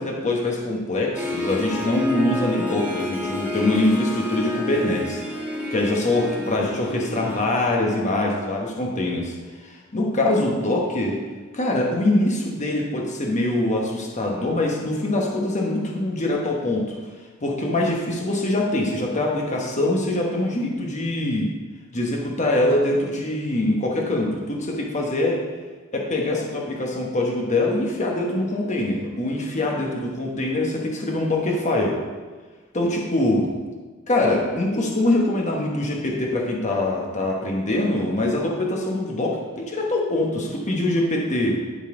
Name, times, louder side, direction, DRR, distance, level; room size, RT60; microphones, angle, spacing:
voice 1, 0.0-5.2 5.7-9.3 9.6-11.2 11.5-17.0 17.4-21.5 21.9-25.4 25.9-32.0 32.7-33.5 34.1-41.6, left 1 dB, 35° left, -1 dB, 1.1 m, -23 dB
Harp, 1.1-7.4, left 2 dB, 5° right, 1.4 m, -30 dB
12.0 x 4.1 x 3.7 m, 1.4 s
head